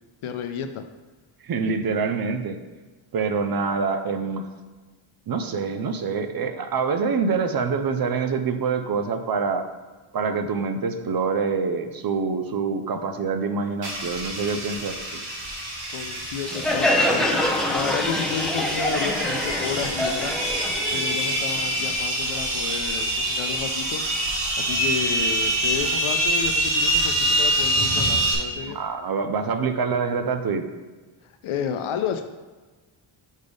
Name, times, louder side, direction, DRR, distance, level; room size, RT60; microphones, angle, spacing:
voice 1, 0.2-0.8 15.9-28.8 31.2-32.2, left 7 dB, 75° left, 7 dB, 0.6 m, -32 dB
voice 2, 1.4-2.6 3.1-4.5 5.3-9.7 10.1-15.2 28.6-30.7, right 5 dB, 45° right, 8 dB, 0.5 m, -26 dB
sound 1, 13.8-28.3, right 1 dB, 90° right, 1.7 m, -26 dB
Crowd, 16.5-21.9, left 1 dB, ahead, 0.6 m, -25 dB
6.3 x 3.5 x 5.2 m, 1.3 s
wide cardioid pair, 130°, 49 cm